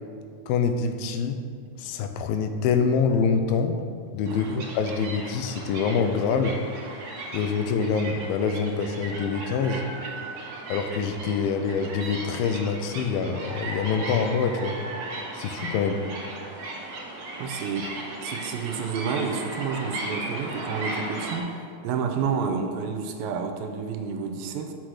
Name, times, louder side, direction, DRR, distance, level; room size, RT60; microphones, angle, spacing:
voice 1, 0.5-1.4 1.8-3.8 4.1-6.6 7.3-9.9 10.7-14.8 15.3-16.1, left 5 dB, 90° left, 7 dB, 2.5 m, -25 dB
sound 1, 4.2-21.4, right 2 dB, 60° right, 2.0 m, -36 dB
voice 2, 4.2-4.6 17.4-24.7, right 6 dB, 85° right, 5 dB, 2.4 m, -30 dB
6.4 x 6.0 x 6.2 m, 2.2 s
omnidirectional pair, 4.1 m